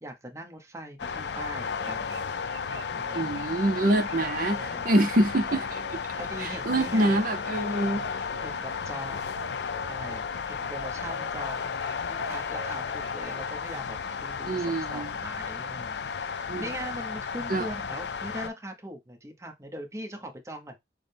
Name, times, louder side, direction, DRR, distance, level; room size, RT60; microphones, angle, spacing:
voice 1, 0.0-2.2 2.9-3.5 4.6-4.9 6.1-7.2 8.4-9.4 9.9-20.8, right 1 dB, 15° right, 0.9 m, -41 dB
sound 1, 1.0-18.5, left 6 dB, 70° left, 0.5 m, -33 dB
sound 2, 1.5-4.7 5.5-6.1 6.7-7.2 8.0-8.5 9.3-10.0 10.8-11.3 11.6-13.4, equal, 75° right, 0.9 m, -45 dB
voice 2, 3.1-6.0 6.4-8.2 14.5-15.1 16.5-16.7 17.5-17.7, right 1 dB, 50° right, 0.6 m, -26 dB
6.2 x 2.1 x 3.4 m
head